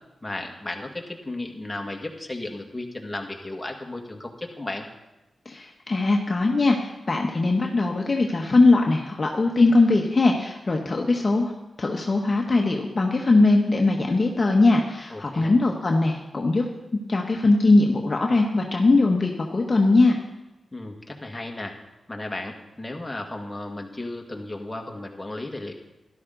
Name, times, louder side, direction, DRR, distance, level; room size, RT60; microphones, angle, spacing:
voice 1, 0.2-4.8 15.1-15.6 20.7-21.8 22.1-25.7, left 2 dB, 20° left, 1 dB, 1.9 m, -34 dB
voice 2, 5.5-6.8 7.1-11.5 11.8-16.6 17.1-20.2, left 3 dB, 40° left, 1 dB, 1.1 m, -20 dB
12.5 x 11.5 x 3.9 m, 1.0 s
cardioid pair, 60°, 0 cm